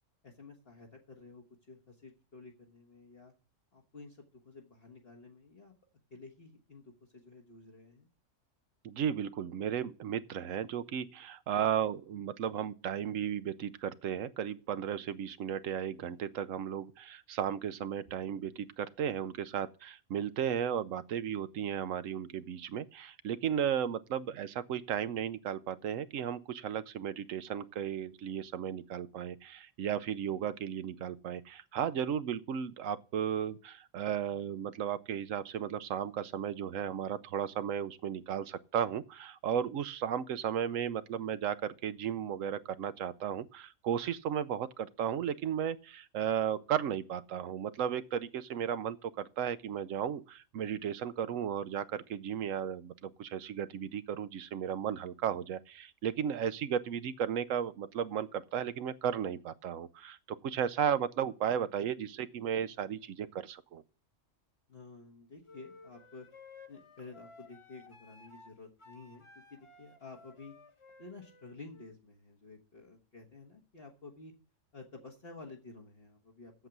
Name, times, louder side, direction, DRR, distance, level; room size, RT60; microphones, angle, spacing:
voice 1, 0.2-3.3 3.7-5.7 6.1-8.1 64.7-66.3 66.7-70.5 71.0-74.3 74.7-76.5, left 3 dB, 50° left, 1.6 m, -52 dB
voice 2, 8.8-63.8, right 9 dB, 85° right, 1.1 m, -35 dB
sound 1, 65.5-72.0, left 3 dB, 25° left, 1.0 m, -56 dB
8.1 x 7.3 x 8.0 m
omnidirectional pair, 1.3 m